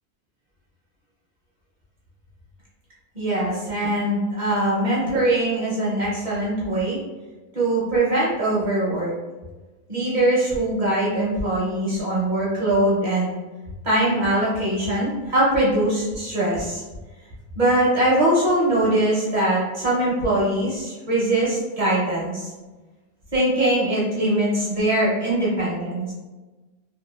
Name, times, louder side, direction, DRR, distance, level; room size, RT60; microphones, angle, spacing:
voice 1, 3.1-7.0 7.5-9.1 9.9-13.3 13.8-16.8 17.6-22.5 23.3-26.1, right 1 dB, 45° right, -6 dB, 0.6 m, -22 dB
2.8 x 2.3 x 2.2 m, 1.2 s
omnidirectional pair, 1.6 m